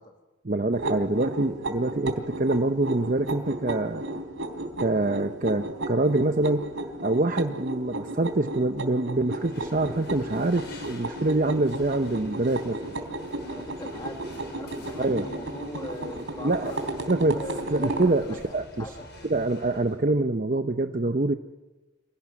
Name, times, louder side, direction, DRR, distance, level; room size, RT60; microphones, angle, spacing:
voice 1, 0.4-4.0 4.8-6.7 7.0-12.8 15.0-15.2 16.4-16.7 17.1-17.4 17.7-18.9 19.2-21.3, right 2 dB, 40° right, 7 dB, 0.8 m, -25 dB
sound 1, 0.7-18.1, right 1 dB, 80° right, 3.4 m, -34 dB
sound 2, 9.3-20.0, left 1 dB, 55° left, 6.9 m, -47 dB
voice 2, 13.3-16.8 17.2-17.9 18.3-18.9, left 1 dB, 20° left, 3 dB, 1.9 m, -41 dB
26.5 x 18.0 x 9.6 m, 1.2 s
head